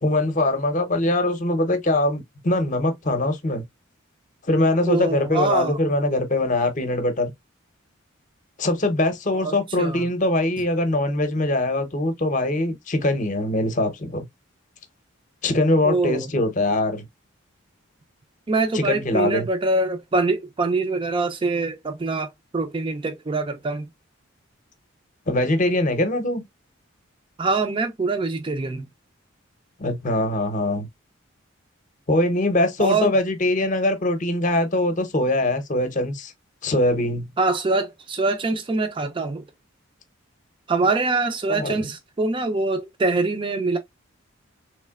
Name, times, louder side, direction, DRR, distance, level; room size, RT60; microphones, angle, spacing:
voice 1, 0.0-3.6 4.5-7.3 8.6-14.2 15.4-17.0 18.7-19.5 25.3-26.4 29.8-30.9 32.1-36.3 36.6-37.3 41.5-41.8, left 1 dB, 35° left, 0.7 m, -22 dB
voice 2, 4.9-5.8 9.4-10.1 15.8-16.3 18.5-23.9 27.4-28.9 32.8-33.1 37.4-39.4 40.7-43.8, right 3 dB, 25° right, 0.4 m, -24 dB
3.6 x 3.1 x 2.2 m
head